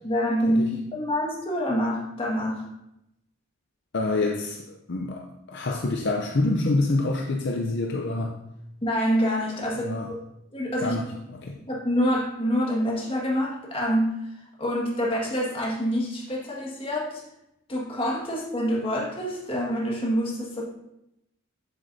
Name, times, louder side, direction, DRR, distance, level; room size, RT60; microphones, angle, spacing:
voice 1, 0.0-2.6 8.8-10.2 10.5-11.0 11.7-14.1 14.6-17.2 17.7-20.6, equal, 25° left, -4 dB, 1.7 m, -26 dB
voice 2, 3.9-8.4 9.8-10.1 10.8-11.6, left 2 dB, 55° left, 1 dB, 0.6 m, -27 dB
8.0 x 7.3 x 2.7 m, 0.85 s
head